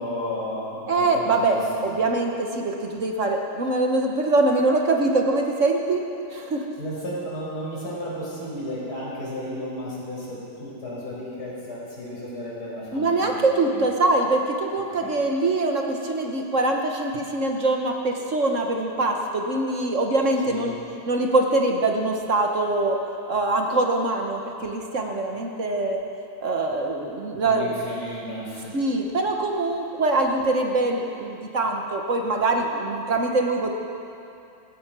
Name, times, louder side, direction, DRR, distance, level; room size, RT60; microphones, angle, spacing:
voice 1, 0.0-1.9 6.8-13.3 13.7-13.8 15.0-15.1 20.5-20.7 27.4-28.7, equal, 55° left, -6 dB, 5.5 m, -33 dB
voice 2, 0.9-6.0 6.3-6.7 12.9-20.7 21.1-23.0 23.3-26.0 26.4-27.8 28.7-33.7, right 2 dB, 45° right, 2 dB, 1.3 m, -23 dB
15.5 x 14.5 x 6.0 m, 2.7 s
omnidirectional pair, 2.1 m